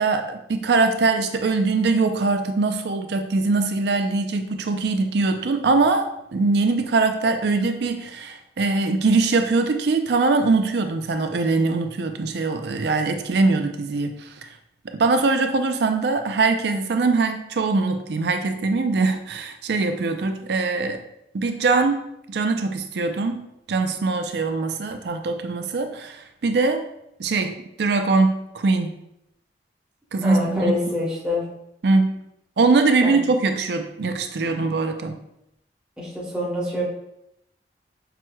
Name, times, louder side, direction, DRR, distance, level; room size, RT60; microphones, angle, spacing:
voice 1, 0.0-14.3 14.9-21.0 21.3-22.0 22.3-26.9 27.2-27.5 27.8-28.9 30.1-30.7 31.8-32.1 32.6-35.2, right 3 dB, 65° right, 7 dB, 0.4 m, -22 dB
voice 2, 30.2-31.4 33.0-33.1 36.0-36.8, left 2 dB, 5° right, -7 dB, 1.0 m, -26 dB
6.0 x 3.0 x 2.2 m, 0.80 s
head